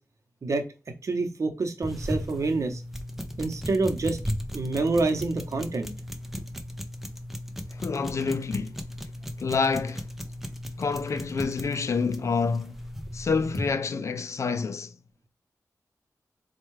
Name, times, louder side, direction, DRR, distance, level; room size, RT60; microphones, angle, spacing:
voice 1, 1.0-2.8 3.4-4.2 4.5-5.9, right 3 dB, 60° right, 0.8 m, -27 dB
sound 1, 1.8-13.7, equal, 5° right, 0.5 m, -36 dB
voice 2, 7.8-8.8 9.4-10.0 10.8-12.8 13.1-14.9, left 5 dB, 55° left, 0.3 m, -28 dB
4.4 x 2.3 x 3.1 m
wide cardioid pair, 100°, 6 cm